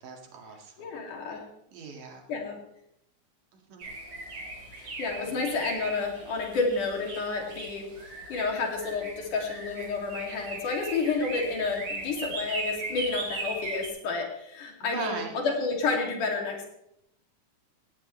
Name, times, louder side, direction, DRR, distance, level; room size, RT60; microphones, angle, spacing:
voice 1, 0.0-0.9 1.7-2.2 3.7-3.9 5.2-5.4 14.8-15.3, right 4 dB, 90° right, 2 dB, 3.6 m, -38 dB
voice 2, 0.8-1.4 2.3-2.6 4.7-16.7, left 4 dB, 85° left, 1 dB, 4.1 m, -30 dB
sound 1, 3.8-13.9, right 2 dB, 55° right, 4.3 m, -38 dB
17.5 x 16.5 x 3.2 m, 0.79 s
omnidirectional pair, 3.5 m